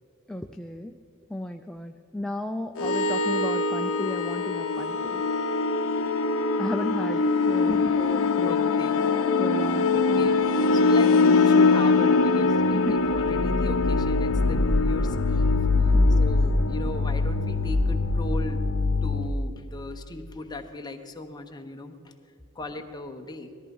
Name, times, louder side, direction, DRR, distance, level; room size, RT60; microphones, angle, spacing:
voice 1, 0.3-0.9 1.3-5.2 6.6-8.6 9.4-10.3 12.7-13.0 15.9-16.3, left 1 dB, 5° left, 4 dB, 0.4 m, -34 dB
sound 1, 2.8-19.3, left 3 dB, 60° left, 0.7 m, -22 dB
voice 2, 7.5-8.0 8.4-9.0 9.9-18.7 19.0-22.1 22.5-23.5, left 2 dB, 20° left, 4 dB, 1.0 m, -37 dB
19.0 x 14.0 x 5.4 m, 2.4 s
head